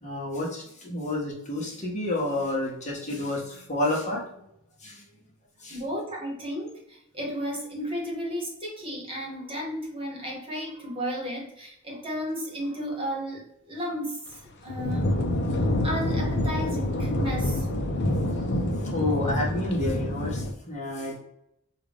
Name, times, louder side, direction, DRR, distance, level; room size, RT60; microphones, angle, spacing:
voice 1, 0.0-4.4 4.8-5.0 5.6-5.8 18.9-21.2, left 1 dB, 35° left, -3 dB, 1.2 m, -30 dB
voice 2, 5.7-15.1 15.5-17.9 18.8-18.9, equal, 25° right, -2 dB, 1.3 m, -34 dB
sound 1, 14.7-20.5, left 1 dB, 55° left, 0.6 m, -27 dB
5.4 x 2.5 x 3.5 m, 0.77 s
head